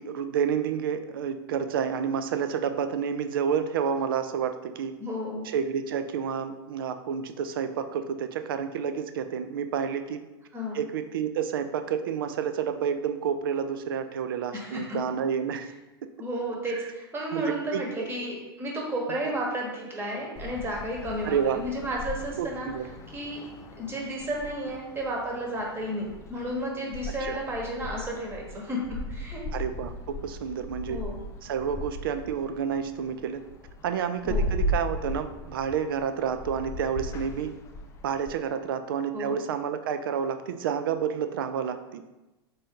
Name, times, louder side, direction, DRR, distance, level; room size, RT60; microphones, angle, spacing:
voice 1, 0.0-4.9 5.4-10.2 10.7-15.7 17.3-18.1 19.3-19.4 21.2-21.6 22.4-22.9 27.2-27.4 29.5-31.0 31.4-33.4 33.8-37.5 38.0-42.0, right 7 dB, 60° right, 9 dB, 0.4 m, -29 dB
voice 2, 5.0-5.4 10.5-10.8 14.5-14.8 16.2-22.7 23.1-23.4 23.8-28.8 29.1-29.4 30.9-31.2 34.2-34.6 39.1-39.4, equal, 15° right, -1 dB, 1.1 m, -32 dB
sound 1, 20.4-38.3, left 1 dB, 20° left, 0.4 m, -37 dB
4.1 x 2.7 x 3.7 m, 1.0 s
figure-of-eight pair, 90°, 13 cm